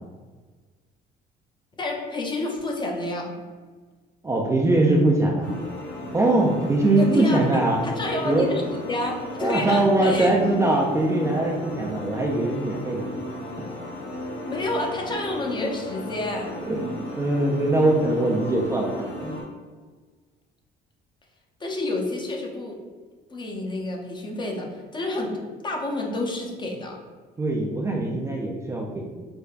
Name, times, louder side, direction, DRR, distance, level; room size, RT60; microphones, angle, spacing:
voice 1, 1.8-3.3 7.0-7.4 7.8-8.6 8.9-10.3 14.4-16.5 21.6-22.8 23.3-25.4 25.6-27.0, left 2 dB, 25° left, 0 dB, 0.7 m, -29 dB
voice 2, 4.2-5.5 6.1-7.8 8.2-8.5 9.4-13.1 16.7-19.3 27.4-29.0, right 2 dB, 15° right, -2 dB, 0.4 m, -22 dB
sound 1, 5.4-19.4, left 1 dB, 90° left, 1.2 m, -35 dB
4.4 x 2.2 x 2.4 m, 1.4 s
cardioid pair, 110°, 17 cm